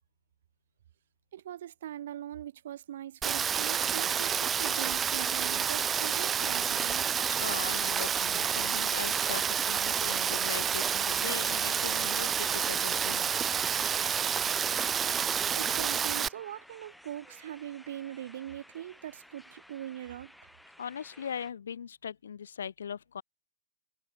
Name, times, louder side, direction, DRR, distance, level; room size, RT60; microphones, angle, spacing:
voice 1, 1.3-7.1 15.5-20.3, right 11 dB, 70° right, 0.8 m, -41 dB
Rain, 3.2-16.3, right 7 dB, 25° right, 0.3 m, -29 dB
sound 1, 4.1-21.5, equal, ahead, 3.5 m, -55 dB
voice 2, 7.3-13.3 20.8-23.2, left 8 dB, 85° left, 3.0 m, -40 dB
hypercardioid pair, 110°, 0 cm